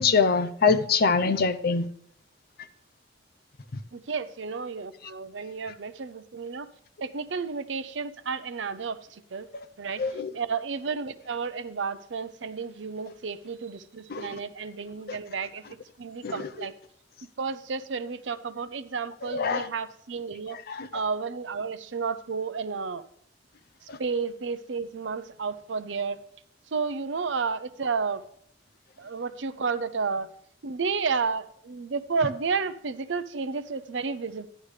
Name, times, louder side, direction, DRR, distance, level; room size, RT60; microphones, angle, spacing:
voice 1, 0.0-1.9 10.0-10.3 14.1-14.3 16.2-16.5 19.3-19.7 20.7-20.9, left 5 dB, 55° left, 11 dB, 0.6 m, -24 dB
voice 2, 3.9-6.7 7.0-9.5 9.8-10.0 10.3-15.6 16.0-16.7 17.4-20.6 20.9-23.0 24.0-26.2 26.7-28.2 29.0-30.3 30.6-34.5, right 5 dB, 75° right, 13 dB, 0.6 m, -31 dB
11.5 x 11.0 x 3.3 m, 0.69 s
head